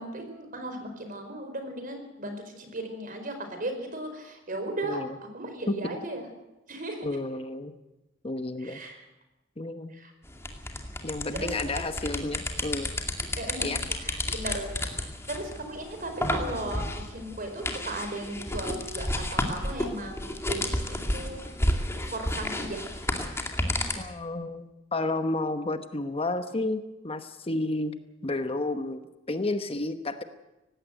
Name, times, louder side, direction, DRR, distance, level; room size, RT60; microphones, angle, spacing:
voice 1, 0.0-5.0 5.3-6.3 6.7-7.1 8.6-9.1 9.9-10.1 11.3-11.8 13.4-13.7 14.0-14.9 15.2-22.8, right 1 dB, 45° right, 6 dB, 4.6 m, -36 dB
voice 2, 7.0-7.7 8.2-8.8 9.6-9.9 11.0-12.9 13.6-13.8 24.0-27.9 28.2-30.2, left 2 dB, 30° left, 9 dB, 1.0 m, -31 dB
sound 1, 10.3-23.9, left 1 dB, 15° left, 2.4 m, -32 dB
18.5 x 16.0 x 9.1 m, 1.0 s
head